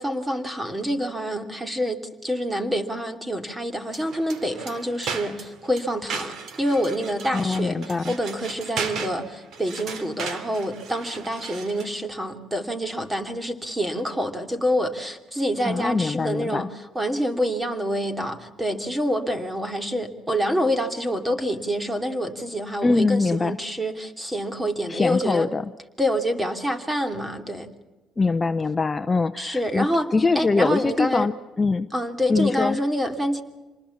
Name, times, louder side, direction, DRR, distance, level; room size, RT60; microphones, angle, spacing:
voice 1, 0.0-7.8 8.1-16.7 16.9-25.5 26.0-27.7 29.4-30.1 30.3-31.3 31.9-33.4, equal, 15° right, 7 dB, 2.9 m, -27 dB
sound 1, 3.8-12.0, right 5 dB, 70° right, 2.7 m, -36 dB
voice 2, 7.3-8.2 15.6-16.7 22.8-23.6 24.9-25.7 28.2-31.9 32.3-32.8, left 3 dB, 25° left, 10 dB, 0.8 m, -23 dB
26.5 x 20.0 x 7.2 m, 1.2 s
cardioid pair, 100°, 0 cm